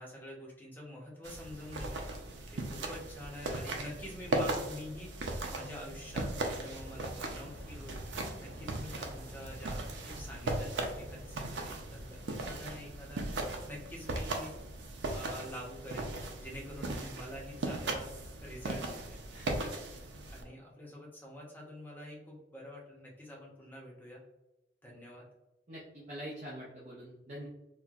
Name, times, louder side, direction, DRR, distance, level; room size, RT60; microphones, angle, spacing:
voice 1, 0.0-2.0 2.5-13.3 13.7-14.5 15.1-16.1 16.4-19.2 20.3-24.2 24.8-25.2, equal, 10° left, -3 dB, 0.8 m, -47 dB
sound 1, 1.2-20.4, right 2 dB, 90° right, 0.5 m, -38 dB
sound 2, 6.2-13.7, equal, 65° right, 1.5 m, -52 dB
voice 2, 25.7-27.5, equal, 40° right, -6 dB, 0.6 m, -45 dB
4.2 x 2.2 x 2.4 m, 0.95 s
head